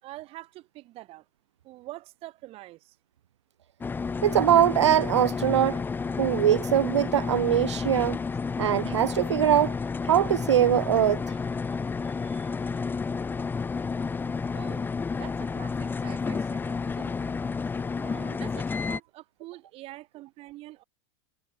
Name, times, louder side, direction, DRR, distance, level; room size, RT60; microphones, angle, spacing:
voice 1, 0.0-1.2 1.6-3.0 6.1-6.2 11.7-12.7 14.5-14.9 15.1-17.3 18.0-20.8, right 17 dB, 40° right, 5.0 m, -46 dB
sound 1, 3.8-19.0, left 5 dB, 15° left, 1.0 m, -31 dB
voice 2, 4.2-5.8 6.2-8.2 8.6-9.8 10.0-11.4, right 10 dB, 70° right, 0.6 m, -22 dB
figure-of-eight pair, 90°, 15 cm